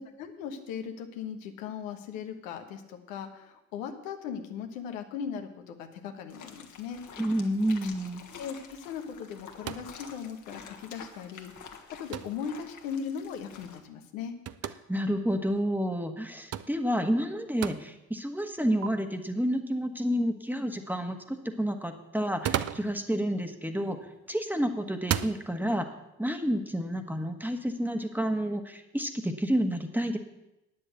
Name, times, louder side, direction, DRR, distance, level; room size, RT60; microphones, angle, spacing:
voice 1, 0.0-7.0 8.4-11.5 11.9-14.3, left 7 dB, 75° left, 5 dB, 1.2 m, -38 dB
sound 1, 6.3-13.8, left 6 dB, 50° left, 1.7 m, -48 dB
voice 2, 7.2-8.2 14.9-24.0 24.3-25.9 26.2-30.2, equal, 5° right, 6 dB, 1.5 m, -29 dB
sound 2, 9.6-10.0 12.1-12.4 14.5-14.8 16.5-16.7 17.6-17.8 18.8-18.9 22.2-22.9 24.1-24.4 25.0-25.4, right 10 dB, 40° right, 0.7 m, -32 dB
9.7 x 7.1 x 8.1 m, 0.90 s
hypercardioid pair, 50°, 39 cm